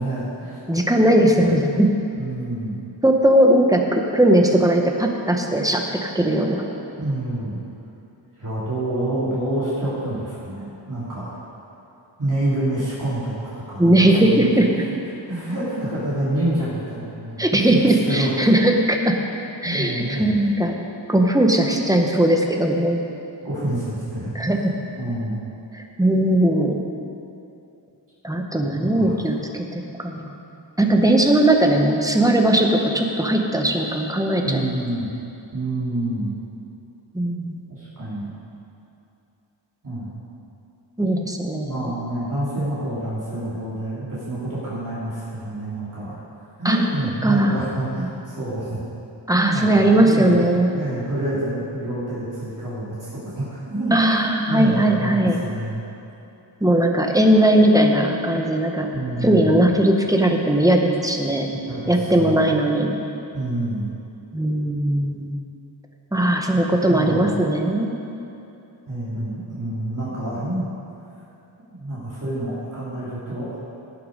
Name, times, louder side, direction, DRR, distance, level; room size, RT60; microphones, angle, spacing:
voice 1, 0.0-0.6 2.2-2.8 6.0-7.6 8.4-11.4 12.2-13.4 13.7-14.6 15.3-17.6 18.0-18.5 19.6-20.4 23.4-24.6 25.0-25.4 28.6-29.1 34.4-35.1 35.5-36.4 37.7-38.3 39.8-40.2 41.6-46.2 46.6-48.8 49.3-50.4 50.7-54.0 54.5-55.8 58.9-59.7 61.5-62.5 63.3-63.9 66.6-67.3 68.9-70.6 71.7-73.6, right 1 dB, 40° right, -11 dB, 3.0 m, -27 dB
voice 2, 0.7-1.9 3.0-6.6 13.8-14.7 17.4-19.2 19.6-20.8 21.1-23.0 24.3-24.7 25.7-26.8 28.2-30.3 30.8-34.6 37.1-37.6 41.0-41.8 46.6-46.8 47.2-47.5 49.3-50.7 53.9-55.4 56.6-58.9 59.2-61.5 61.9-63.0 64.3-65.4 66.1-68.0, right 1 dB, 10° right, 2 dB, 0.9 m, -18 dB
17.5 x 6.7 x 5.2 m, 2.8 s
wide cardioid pair, 170°, 46 cm